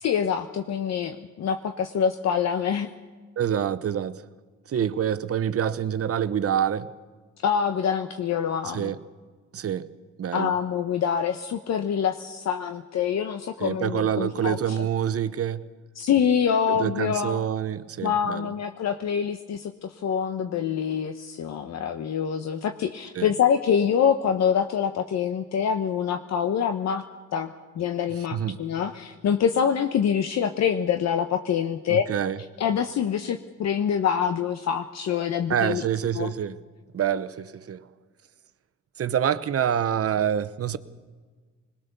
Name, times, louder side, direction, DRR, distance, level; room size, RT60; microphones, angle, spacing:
voice 1, 0.0-2.9 4.8-4.9 7.4-8.9 10.3-14.8 15.9-17.4 18.0-27.0 27.3-32.0 32.6-35.8 36.1-36.3, left 8 dB, 60° left, 1.0 m, -25 dB
voice 2, 3.4-4.2 4.7-6.9 8.7-9.0 9.5-9.9 10.2-10.5 13.6-15.7 16.7-18.5 23.1-23.3 28.3-28.6 31.9-32.4 35.5-36.6 36.9-37.9 39.0-40.8, right 9 dB, 50° right, 1.0 m, -26 dB
21.5 x 20.0 x 6.9 m
cardioid pair, 90°, 30 cm